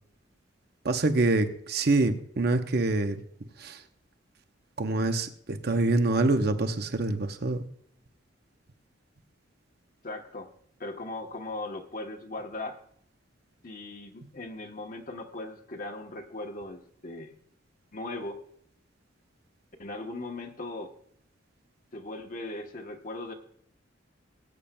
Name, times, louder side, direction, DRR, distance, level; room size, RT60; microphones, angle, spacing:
voice 1, 0.8-3.2 3.6-3.8 4.8-7.6, right 2 dB, 55° right, 8 dB, 0.8 m, -26 dB
voice 2, 10.0-10.5 10.8-12.8 13.6-17.4 17.9-18.4 19.8-20.9 21.9-23.3, left 2 dB, 45° left, 2 dB, 1.0 m, -38 dB
20.0 x 8.6 x 2.2 m, 0.65 s
head